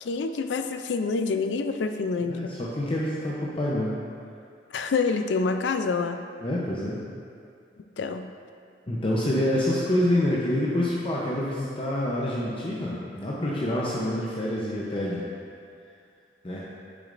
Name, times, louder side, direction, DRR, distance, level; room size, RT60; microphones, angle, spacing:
voice 1, 0.0-2.5 4.7-6.2 8.0-8.3, left 4 dB, 85° left, 8 dB, 0.4 m, -27 dB
voice 2, 2.2-3.9 6.4-7.0 8.9-15.2 16.4-16.7, left 1 dB, 30° left, -5 dB, 0.7 m, -27 dB
8.4 x 6.9 x 2.6 m, 2.3 s
head